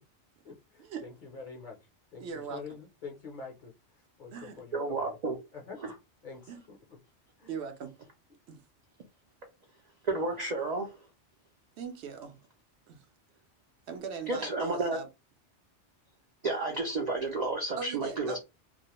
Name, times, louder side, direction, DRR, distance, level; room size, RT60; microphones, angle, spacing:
voice 1, 0.4-1.8 2.1-3.7 4.2-5.2 5.5-5.8 6.2-6.8 7.4-7.5, left 4 dB, 50° left, 0.7 m, -45 dB
voice 2, 2.2-2.6 4.3-4.6 6.5-6.6 7.5-7.9 8.5-8.6 11.8-12.4 12.9-13.1 13.9-15.1 17.8-18.4, right 6 dB, 75° right, 0.8 m, -40 dB
voice 3, 4.7-5.4 10.0-11.0 14.3-15.0 16.4-18.4, right 3 dB, 55° right, 0.4 m, -31 dB
2.3 x 2.1 x 2.9 m
omnidirectional pair, 1.2 m